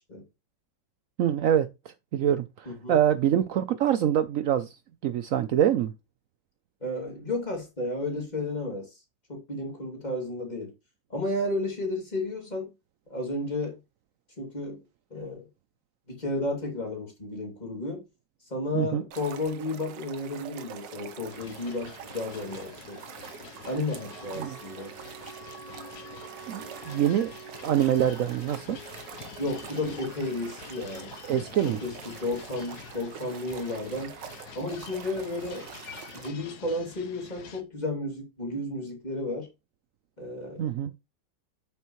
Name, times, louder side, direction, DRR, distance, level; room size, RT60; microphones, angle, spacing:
voice 1, 1.2-1.7 2.1-4.7 5.0-5.9 18.7-19.0 24.4-24.6 26.5-27.3 27.6-28.8 31.3-31.8 40.6-40.9, right 10 dB, 85° right, 0.7 m, -25 dB
voice 2, 2.7-3.0 6.8-8.9 9.3-10.7 11.1-12.7 13.1-13.8 14.4-14.8 15.1-15.5 16.1-18.0 18.5-23.0 23.6-24.9 29.4-31.1 31.6-34.1 34.5-35.7 36.1-39.5 40.2-40.7, left 2 dB, 20° left, 2.6 m, -32 dB
sound 1, 19.1-36.3, right 9 dB, 70° right, 1.5 m, -45 dB
sound 2, 21.3-37.6, left 8 dB, 60° left, 1.4 m, -47 dB
Wind instrument woodwind instrument, 23.8-28.2, right 8 dB, 55° right, 1.5 m, -48 dB
8.6 x 6.8 x 3.1 m
omnidirectional pair, 2.0 m